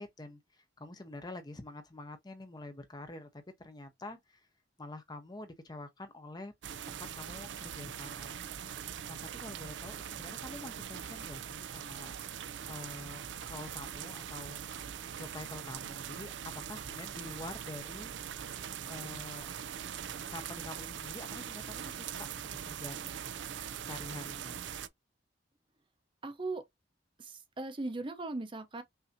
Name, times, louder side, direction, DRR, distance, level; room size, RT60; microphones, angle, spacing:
voice 1, 0.0-4.5 4.8-6.5 6.9-12.1 12.7-18.4 18.9-19.5 20.3-22.3 22.6-23.3 23.8-24.6, left 2 dB, 20° left, 0.7 m, -47 dB
sound 1, 6.6-24.9, right 8 dB, 75° right, 0.4 m, -42 dB
voice 2, 26.2-26.6 27.2-28.8, right 2 dB, 25° right, 0.7 m, -38 dB
5.7 x 2.7 x 2.6 m
head